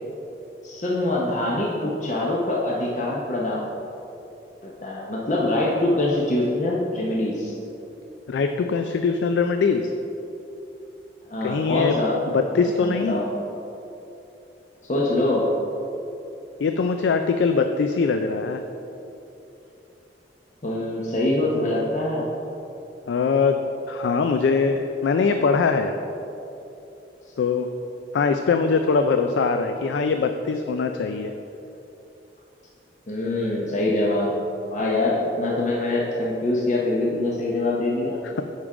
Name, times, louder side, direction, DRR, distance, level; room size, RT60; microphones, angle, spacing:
voice 1, 0.6-3.7 4.6-7.6 11.3-12.2 12.5-13.3 14.8-15.5 20.6-22.3 33.1-38.2, left 2 dB, 45° left, -4 dB, 0.8 m, -24 dB
voice 2, 8.3-9.9 11.4-12.0 12.3-13.1 16.6-18.6 23.1-25.9 27.4-27.7 28.1-31.3 34.8-34.9, left 5 dB, 90° left, 6 dB, 0.4 m, -22 dB
9.7 x 3.7 x 4.9 m, 2.9 s
head